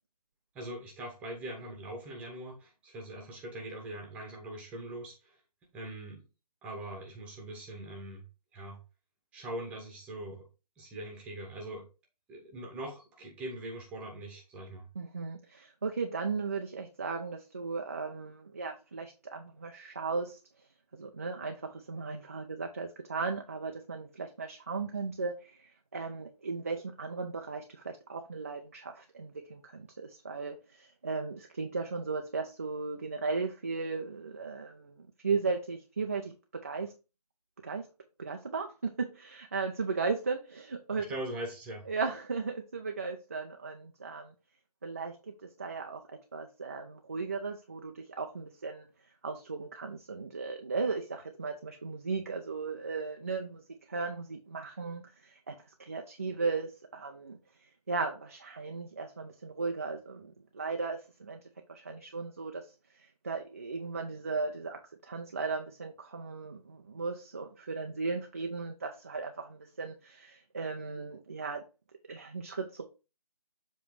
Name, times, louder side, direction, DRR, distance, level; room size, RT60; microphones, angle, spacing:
voice 1, 0.5-5.4 5.7-6.3 6.6-8.3 8.5-8.8 9.3-10.5 10.8-11.9 12.3-14.9 40.9-41.9, right 1 dB, 5° right, 0.9 m, -42 dB
voice 2, 15.0-20.4 20.9-36.9 37.6-37.9 38.2-41.0 41.9-44.3 44.8-45.3 45.6-48.9 49.2-61.4 61.7-71.6 72.1-72.8, right 4 dB, 20° right, 0.4 m, -36 dB
7.2 x 3.1 x 4.7 m
figure-of-eight pair, 160°, 20 cm